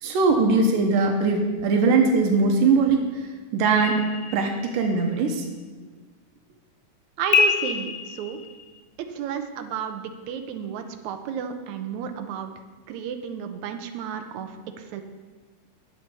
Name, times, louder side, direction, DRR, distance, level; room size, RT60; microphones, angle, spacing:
voice 1, 0.0-5.5, right 4 dB, 90° right, 3 dB, 2.6 m, -21 dB
sound 1, 3.8-5.0 7.3-8.8, left 6 dB, 75° left, 2.0 m, -26 dB
voice 2, 7.2-8.4 9.1-12.5 12.9-15.0, right 8 dB, 70° right, 6 dB, 2.0 m, -32 dB
9.6 x 7.5 x 6.9 m, 1.4 s
omnidirectional pair, 3.7 m